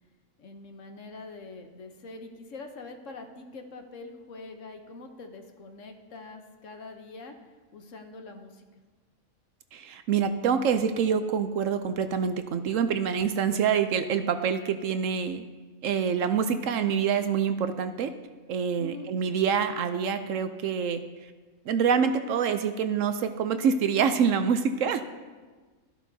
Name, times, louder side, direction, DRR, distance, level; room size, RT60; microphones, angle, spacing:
voice 1, 0.4-7.3 7.7-8.7 18.8-19.1, left 3 dB, 65° left, 5 dB, 1.2 m, -44 dB
voice 2, 9.7-15.4 15.8-18.1 18.5-21.0 21.7-25.0, right 7 dB, 70° right, 9 dB, 0.9 m, -26 dB
13.5 x 11.5 x 2.7 m, 1.4 s
omnidirectional pair, 1.5 m